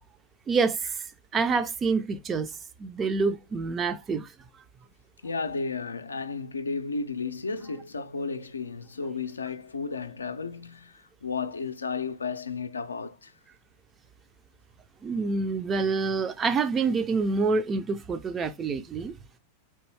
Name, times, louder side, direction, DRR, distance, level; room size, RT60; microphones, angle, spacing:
voice 1, 0.5-1.0 1.3-2.5 2.8-4.3 15.0-19.2, right 4 dB, 20° right, 0.4 m, -27 dB
voice 2, 5.2-13.3, left 4 dB, 75° left, 0.4 m, -33 dB
3.4 x 2.5 x 3.1 m
figure-of-eight pair, 90°, 0 cm